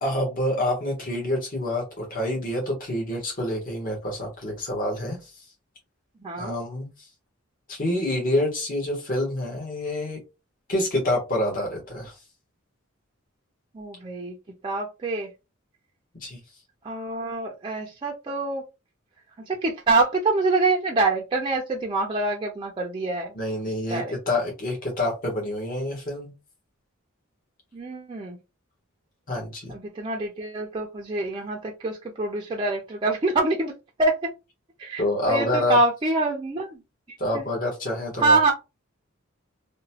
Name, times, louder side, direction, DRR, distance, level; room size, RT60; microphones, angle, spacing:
voice 1, 0.0-5.3 6.4-6.9 7.7-10.2 10.7-12.1 16.2-16.4 23.3-26.3 29.3-29.7 35.0-35.8 37.2-38.5, left 1 dB, 45° left, -2 dB, 1.1 m, -27 dB
voice 2, 6.2-6.6 13.7-14.3 14.6-15.3 16.8-18.6 19.5-23.3 23.9-24.1 27.7-28.4 29.7-33.7 34.0-34.1 34.8-36.8 37.3-37.4 38.2-38.5, right 3 dB, 25° right, 0 dB, 0.4 m, -25 dB
2.9 x 2.1 x 2.7 m, 0.26 s
head